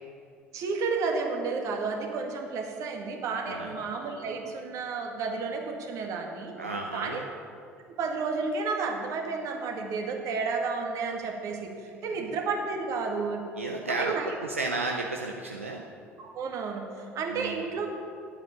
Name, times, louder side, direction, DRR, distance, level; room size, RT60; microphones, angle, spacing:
voice 1, 0.5-6.5 6.9-7.2 8.0-11.7 12.0-13.4 13.9-14.4 16.2-17.9, right 4 dB, 50° right, 2 dB, 2.0 m, -31 dB
voice 2, 6.6-7.2 12.1-12.3 13.6-15.8 17.3-17.7, right 3 dB, 85° right, 1 dB, 0.8 m, -33 dB
10.0 x 8.7 x 8.7 m, 2.3 s
figure-of-eight pair, 60°, 7 cm